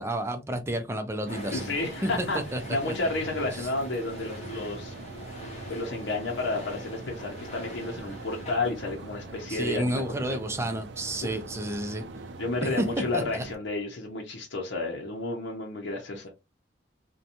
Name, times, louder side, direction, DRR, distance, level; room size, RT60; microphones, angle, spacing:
voice 1, 0.0-1.6 2.0-2.3 2.5-2.6 2.9-3.0 3.5-3.7 9.5-12.0 12.6-12.9 13.1-13.4, right 1 dB, 15° right, 0.4 m, -31 dB
sound 1, 1.2-13.6, right 3 dB, 75° right, 0.4 m, -43 dB
sound 2, 1.3-9.5, left 1 dB, 40° left, 0.9 m, -43 dB
voice 2, 1.5-2.4 2.7-4.9 5.7-10.3 11.2-11.4 12.4-16.3, left 2 dB, 75° left, 0.7 m, -31 dB
2.8 x 2.2 x 2.5 m
head